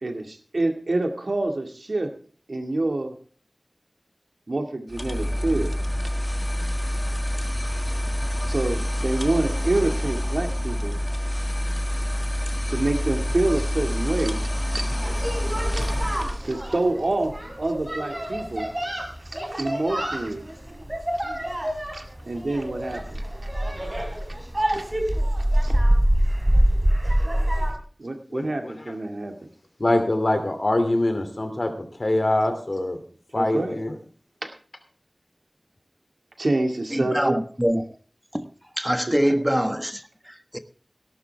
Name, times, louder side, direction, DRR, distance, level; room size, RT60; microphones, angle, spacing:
voice 1, 0.0-2.1 2.5-3.2 4.5-5.8 8.5-11.0 12.7-18.7 19.3-20.5 21.9-23.2 24.7-24.9 25.6-25.8 28.0-29.4 33.3-33.8 34.4-34.5 36.4-37.4 39.3-39.4, right 2 dB, 75° right, 2.2 m, -27 dB
sound 1, 4.9-16.4, equal, 25° left, 1.6 m, -27 dB
sound 2, 15.0-27.7, right 1 dB, 30° right, 4.2 m, -25 dB
voice 2, 28.3-28.7 29.8-33.0 33.3-33.9, left 1 dB, 55° left, 2.7 m, -24 dB
voice 3, 36.9-37.9 38.3-38.5 38.8-40.6, equal, 10° right, 1.3 m, -24 dB
17.5 x 11.5 x 3.5 m
wide cardioid pair, 45°, 0 cm